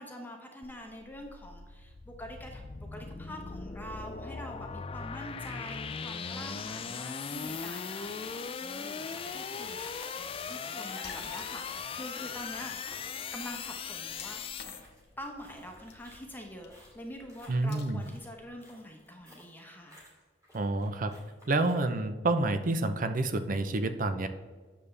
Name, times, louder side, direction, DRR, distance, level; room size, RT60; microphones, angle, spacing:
voice 1, 0.0-12.7 13.3-14.4 15.2-20.0, equal, 10° left, 2 dB, 0.9 m, -45 dB
sound 1, 0.6-14.8, left 5 dB, 30° left, 0.4 m, -39 dB
sound 2, 7.7-21.7, left 1 dB, 20° right, 2.4 m, -58 dB
Water / Splash splatter, 11.0-18.5, left 5 dB, 60° left, 1.1 m, -54 dB
voice 2, 17.5-18.0 20.5-21.1 21.5-24.3, right 2 dB, 45° right, 10 dB, 0.6 m, -28 dB
9.1 x 6.8 x 3.3 m, 1.4 s
head